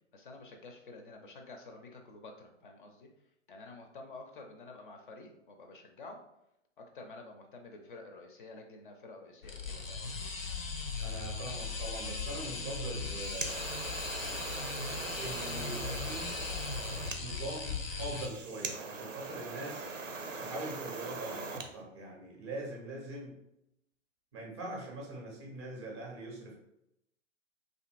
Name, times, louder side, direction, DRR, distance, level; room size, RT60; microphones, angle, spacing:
voice 1, 0.1-3.1 3.5-6.2 6.8-10.3, left 3 dB, 45° left, 3 dB, 0.4 m, -50 dB
sound 1, 9.4-18.3, left 4 dB, 90° left, 0.6 m, -38 dB
voice 2, 11.0-13.6 15.2-16.3 17.2-19.9 20.4-23.4 24.3-26.6, right 2 dB, 25° right, -1 dB, 0.5 m, -42 dB
sound 2, 12.9-21.7, right 4 dB, 90° right, 0.5 m, -42 dB
2.5 x 2.5 x 2.5 m, 0.81 s
figure-of-eight pair, 115°, 38 cm